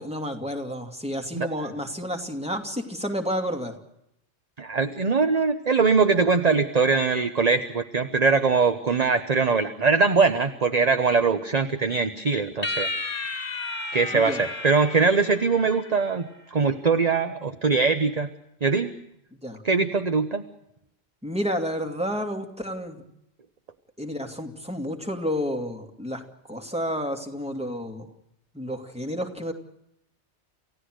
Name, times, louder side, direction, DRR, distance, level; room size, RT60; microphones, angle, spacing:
voice 1, 0.0-3.7 14.1-14.4 19.4-19.6 21.2-23.0 24.0-28.1 28.5-29.5, equal, 5° right, 4 dB, 2.6 m, -30 dB
voice 2, 4.6-12.9 13.9-16.2 16.5-18.3 18.6-18.9 19.6-20.4, right 4 dB, 35° right, 9 dB, 1.0 m, -22 dB
sound 1, 12.6-16.2, left 3 dB, 50° left, 2.0 m, -33 dB
29.0 x 16.0 x 6.5 m, 0.79 s
omnidirectional pair, 1.2 m